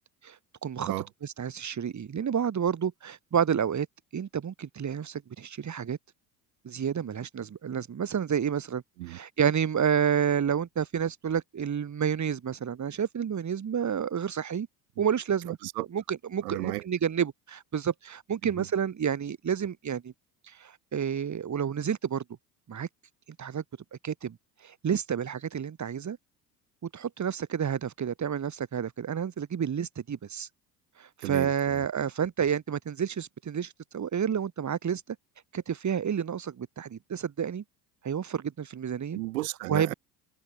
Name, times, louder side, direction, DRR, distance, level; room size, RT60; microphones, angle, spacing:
voice 1, 0.6-0.9 1.2-3.9 4.1-6.0 6.6-8.8 9.1-14.7 15.0-15.6 15.9-20.1 20.5-22.2 22.7-22.9 23.4-23.6 24.0-24.4 24.6-26.2 26.9-30.5 31.0-35.0 35.5-37.6 38.0-39.2 39.7-39.9, right 8 dB, 35° right, 5.5 m, -30 dB
voice 2, 15.5-15.9 16.4-16.9 18.4-18.7 31.2-31.9 39.1-39.9, right 20 dB, 75° right, 5.4 m, -34 dB
hypercardioid pair, 65°, 48 cm